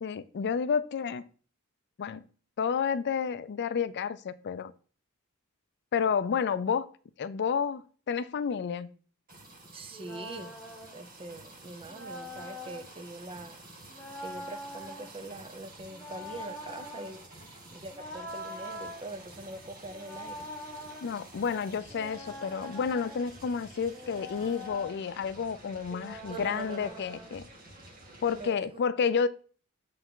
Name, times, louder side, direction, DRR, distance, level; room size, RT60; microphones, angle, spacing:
voice 1, 0.0-1.2 2.0-2.2 2.6-4.7 5.9-6.9 7.2-8.9 21.0-27.4 28.2-29.3, left 6 dB, 55° left, 0.4 m, -30 dB
sound 1, 9.3-28.5, right 2 dB, 40° right, 2.3 m, -51 dB
voice 2, 9.7-10.6 10.9-13.6 14.2-20.5 26.3-27.0 28.3-29.1, right 2 dB, 25° right, 0.7 m, -43 dB
sound 2, 9.9-11.0 11.9-12.8 13.9-15.1 15.9-17.1 17.9-19.0 19.9-21.0 21.9-23.3 23.9-25.0 25.9-27.3, left 1 dB, 10° left, 3.0 m, -43 dB
7.3 x 5.7 x 3.7 m
head